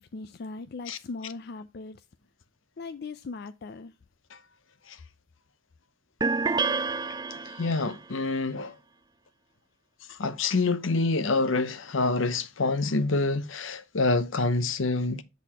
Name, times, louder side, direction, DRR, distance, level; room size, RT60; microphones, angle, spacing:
voice 1, 0.0-2.1 2.8-4.0, left 3 dB, 50° left, 0.4 m, -39 dB
sound 1, 6.2-8.0, right 4 dB, 20° right, 0.4 m, -28 dB
voice 2, 7.3-8.7 10.1-15.2, left 3 dB, 75° left, 0.8 m, -27 dB
8.1 x 4.1 x 4.2 m
head